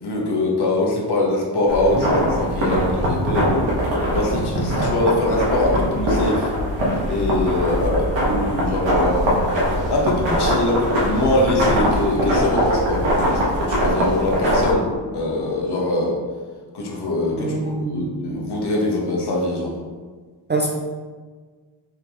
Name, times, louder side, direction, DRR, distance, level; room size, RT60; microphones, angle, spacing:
voice 1, 0.0-3.7 4.1-6.5 7.1-9.3 9.9-14.9 15.1-16.2 16.7-19.7, left 2 dB, 60° left, -2 dB, 1.1 m, -23 dB
sound 1, 1.7-14.7, equal, 75° right, 1.4 m, -21 dB
voice 2, 17.4-18.0 20.5-20.8, right 3 dB, 25° right, 0 dB, 0.3 m, -24 dB
4.6 x 3.8 x 3.0 m, 1.5 s
wide cardioid pair, 135°, 45 cm